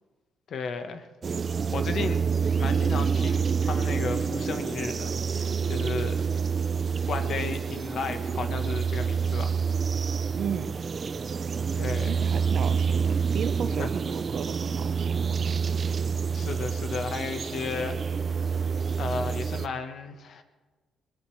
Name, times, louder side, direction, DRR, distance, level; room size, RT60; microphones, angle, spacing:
voice 1, 0.5-1.1 1.7-2.2 2.6-6.2 7.1-9.6 11.8-12.2 13.8-13.9 16.3-18.3 19.0-20.4, left 5 dB, 60° left, 8 dB, 1.3 m, -34 dB
sound 1, 1.2-19.7, right 6 dB, 40° right, 0.6 m, -27 dB
voice 2, 10.3-10.7 12.0-15.8, right 8 dB, 65° right, 11 dB, 1.0 m, -35 dB
21.0 x 20.5 x 3.3 m, 1.3 s
cardioid pair, 90°, 0 cm